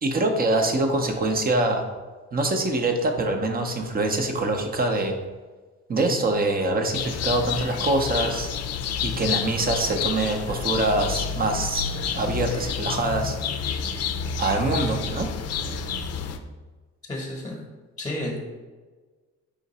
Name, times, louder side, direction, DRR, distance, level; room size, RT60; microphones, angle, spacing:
voice 1, 0.0-1.8 2.3-5.2 5.9-8.5 9.0-11.9 12.1-13.4 14.4-15.3, right 2 dB, 30° right, 4 dB, 0.7 m, -24 dB
sound 1, 6.9-16.4, left 6 dB, 55° left, 0.5 m, -29 dB
voice 2, 17.1-17.6 18.0-18.4, left 1 dB, 15° left, -2 dB, 1.0 m, -31 dB
5.0 x 2.5 x 4.1 m, 1.4 s
cardioid pair, 90°, 30 cm